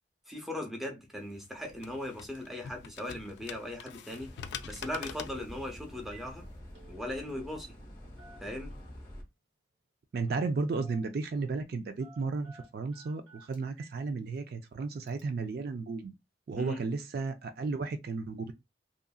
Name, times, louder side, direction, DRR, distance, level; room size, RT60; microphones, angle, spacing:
voice 1, 0.3-4.3 4.6-6.5 6.9-7.7 8.4-8.7 16.6-16.8, left 1 dB, ahead, 0.6 m, -38 dB
sound 1, 1.2-6.6, left 7 dB, 65° left, 0.3 m, -46 dB
sound 2, 4.2-9.2, equal, 25° left, 0.9 m, -48 dB
Telephone, 5.5-5.7 6.0-6.3 6.6-7.9 8.2-9.1 10.3-10.5 10.8-11.5 12.0-14.0 14.4-14.5 15.1-15.2, right 3 dB, 85° right, 0.9 m, -57 dB
voice 2, 10.1-16.1 16.5-18.5, right 4 dB, 55° right, 0.3 m, -34 dB
2.8 x 2.5 x 2.3 m
head